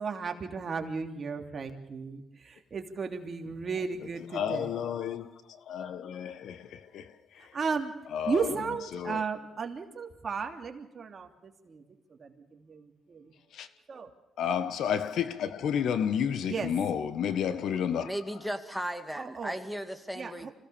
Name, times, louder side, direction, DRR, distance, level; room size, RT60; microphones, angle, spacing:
voice 1, 0.0-4.7 7.5-7.9 8.3-11.8 12.1-13.3 13.9-14.1 16.5-16.7 19.1-19.5 20.2-20.5, right 5 dB, 40° right, 2.9 m, -35 dB
voice 2, 4.3-7.5 8.1-8.5 8.9-9.2 13.5-13.7 14.4-18.1, left 8 dB, 75° left, 1.4 m, -31 dB
voice 3, 18.0-20.5, equal, ahead, 2.3 m, -36 dB
26.0 x 17.0 x 7.1 m
cardioid pair, 90°, 0 cm